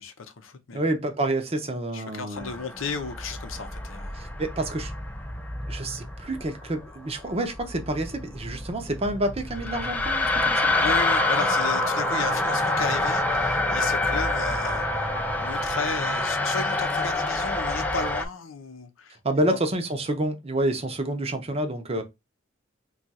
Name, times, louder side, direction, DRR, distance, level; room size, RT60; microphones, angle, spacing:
voice 1, 0.0-0.9 1.9-4.2 10.7-15.1 15.4-19.6, left 5 dB, 90° left, 0.6 m, -34 dB
voice 2, 0.7-2.5 4.1-4.9 5.7-10.7 19.2-22.0, right 1 dB, 30° right, 0.6 m, -28 dB
sound 1, 2.4-18.3, left 2 dB, 10° left, 0.3 m, -27 dB
sound 2, 10.7-16.5, left 4 dB, 45° left, 0.6 m, -42 dB
2.4 x 2.4 x 4.0 m
head